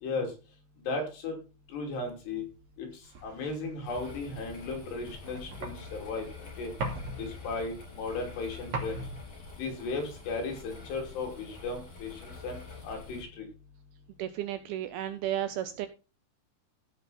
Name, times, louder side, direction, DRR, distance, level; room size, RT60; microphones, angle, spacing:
voice 1, 0.0-0.3 0.9-1.4 1.7-2.4 2.8-2.9 3.2-6.3 6.6-6.7 7.2-9.0 9.6-13.5, left 3 dB, 70° left, 2 dB, 5.0 m, -35 dB
sound 1, 2.2-11.2, right 2 dB, 50° right, 3.5 m, -42 dB
sound 2, 3.8-13.2, left 4 dB, 35° left, 5.4 m, -47 dB
voice 2, 14.2-15.9, right 11 dB, 80° right, 11 dB, 2.3 m, -33 dB
16.0 x 6.0 x 4.2 m, 0.31 s
omnidirectional pair, 5.0 m